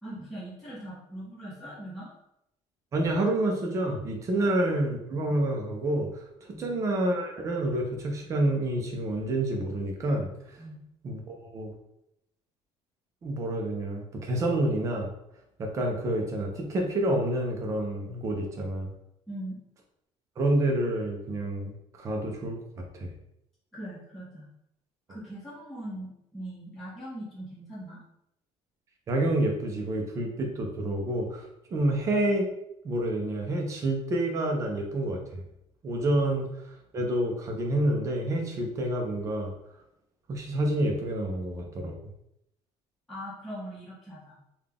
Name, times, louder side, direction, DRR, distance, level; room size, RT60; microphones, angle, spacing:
voice 1, 0.0-2.1 4.3-4.5 6.5-6.7 10.6-10.8 19.3-19.6 23.7-24.5 25.1-28.0 43.1-44.4, right 1 dB, ahead, -10 dB, 1.3 m, -40 dB
voice 2, 2.9-10.6 11.0-11.7 13.2-15.1 15.6-18.9 20.4-23.1 29.1-32.5 32.8-35.2 35.8-36.5 36.9-39.5 40.3-42.0, right 1 dB, 30° right, 2 dB, 0.6 m, -28 dB
3.7 x 2.3 x 3.5 m, 0.80 s
cardioid pair, 175°, 11 cm